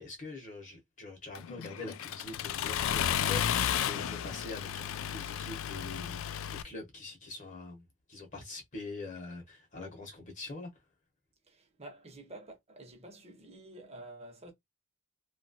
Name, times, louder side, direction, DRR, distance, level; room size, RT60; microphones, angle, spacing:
voice 1, 0.0-10.7, left 3 dB, 40° left, 0.9 m, -44 dB
Accelerating revving vroom, 1.4-6.6, left 9 dB, 75° left, 0.3 m, -33 dB
voice 2, 11.5-14.5, right 1 dB, 30° right, 0.9 m, -49 dB
2.9 x 2.3 x 2.7 m
head